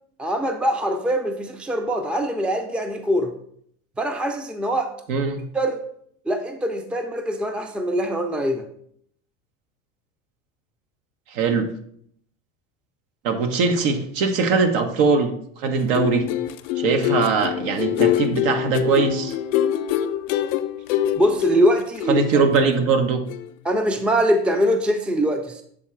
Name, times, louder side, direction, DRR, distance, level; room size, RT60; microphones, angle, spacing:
voice 1, 0.2-3.3 4.0-4.9 5.5-5.8 6.3-8.6 21.1-22.4 23.6-25.6, equal, 5° right, 7 dB, 0.5 m, -23 dB
voice 2, 5.1-5.4 11.3-11.7 13.2-16.2 16.8-19.3 22.1-23.2, right 4 dB, 70° right, 6 dB, 1.1 m, -21 dB
sound 1, 15.8-23.0 23.3-23.5, left 11 dB, 80° left, 0.6 m, -25 dB
7.5 x 3.8 x 4.5 m, 0.67 s
supercardioid pair, 105°, 38 cm